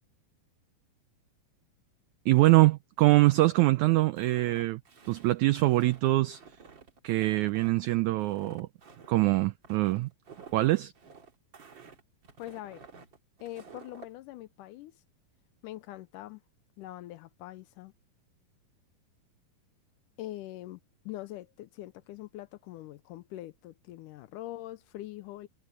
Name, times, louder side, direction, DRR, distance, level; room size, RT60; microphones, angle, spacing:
voice 1, 2.2-4.8 5.1-6.4 7.0-8.7 9.1-10.1 10.5-10.9, right 18 dB, 90° right, 1.6 m, -24 dB
Walk footsteps, 4.2-14.1, right 5 dB, 35° right, 2.5 m, -52 dB
voice 2, 12.4-12.8 13.4-14.9 15.6-16.4 16.8-17.9 20.2-20.8 21.1-25.5, left 15 dB, 80° left, 2.0 m, -43 dB
omnidirectional pair, 4.0 m